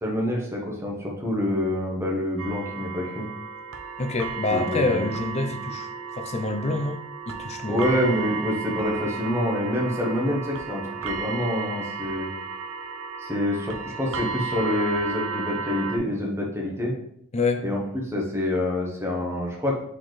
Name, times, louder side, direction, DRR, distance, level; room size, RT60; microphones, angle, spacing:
voice 1, 0.0-3.3 4.5-5.1 7.7-12.3 13.2-16.9 17.6-19.7, left 1 dB, 15° right, -2 dB, 0.9 m, -27 dB
sound 1, 2.4-16.0, right 5 dB, 85° right, 0.6 m, -34 dB
voice 2, 4.0-5.9 6.1-7.0 7.3-8.0 17.3-17.6, left 2 dB, 30° left, 7 dB, 0.5 m, -26 dB
4.1 x 4.0 x 3.2 m, 0.71 s
head